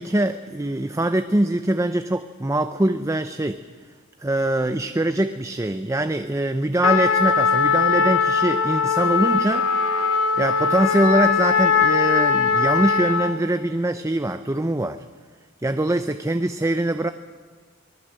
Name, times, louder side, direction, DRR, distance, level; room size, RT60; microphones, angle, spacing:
voice 1, 0.0-3.6 4.2-9.7 10.3-15.0 15.6-17.1, right 1 dB, 15° right, 9 dB, 0.6 m, -23 dB
Trumpet, 6.8-13.4, left 5 dB, 90° left, 2.9 m, -20 dB
24.5 x 20.0 x 7.7 m, 1.5 s
head